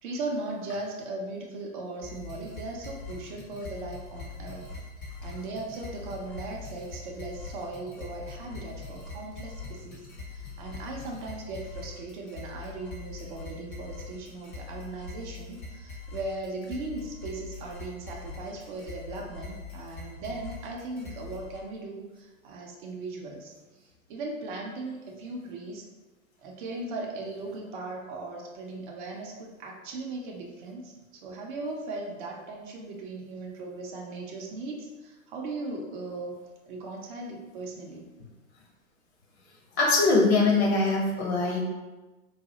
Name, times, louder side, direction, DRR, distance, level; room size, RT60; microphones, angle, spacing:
voice 1, 0.0-4.7 5.2-23.5 23.8-25.8 26.4-36.4 36.7-38.1, right 2 dB, 35° right, 0 dB, 0.6 m, -38 dB
sound 1, 2.0-21.6, left 4 dB, 15° left, 0.4 m, -42 dB
voice 2, 39.8-41.6, left 3 dB, 50° left, -2 dB, 1.0 m, -22 dB
3.9 x 2.2 x 2.8 m, 1.2 s
figure-of-eight pair, 105°, 41 cm